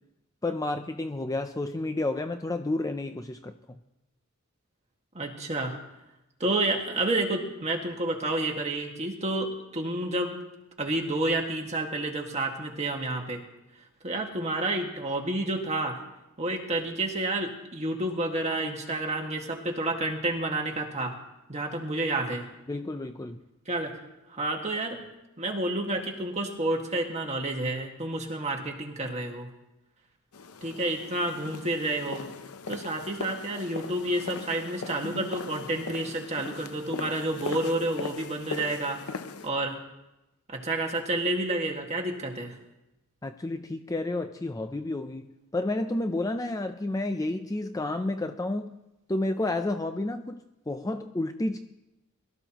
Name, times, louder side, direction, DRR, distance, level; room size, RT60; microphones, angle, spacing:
voice 1, 0.4-3.8 22.7-23.4 43.2-48.7 49.1-50.4 50.7-51.6, left 2 dB, 15° left, 7 dB, 0.5 m, -31 dB
voice 2, 5.1-5.8 6.4-10.3 10.8-13.4 14.0-16.0 16.4-21.1 21.5-22.5 23.7-23.9 24.3-25.0 25.4-29.5 30.6-32.3 32.7-39.0 39.4-39.8 40.5-42.5, right 2 dB, 30° right, 2 dB, 1.9 m, -30 dB
sound 1, 30.3-39.5, left 4 dB, 75° left, 0.7 m, -39 dB
22.5 x 13.5 x 3.0 m, 0.94 s
head